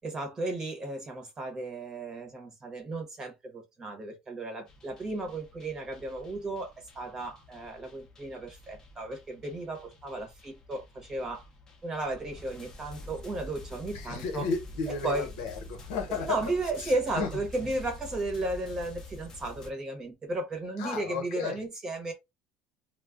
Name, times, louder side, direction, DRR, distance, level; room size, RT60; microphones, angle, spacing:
voice 1, 0.0-11.5 11.8-14.5 14.8-15.4 16.1-22.1, right 2 dB, 20° right, 0.8 m, -34 dB
sound 1, 4.7-19.7, left 2 dB, 20° left, 0.6 m, -48 dB
voice 2, 13.9-16.5 16.8-17.4 20.8-21.6, left 5 dB, 90° left, 0.9 m, -34 dB
2.2 x 2.1 x 3.5 m
cardioid pair, 160°, 3 cm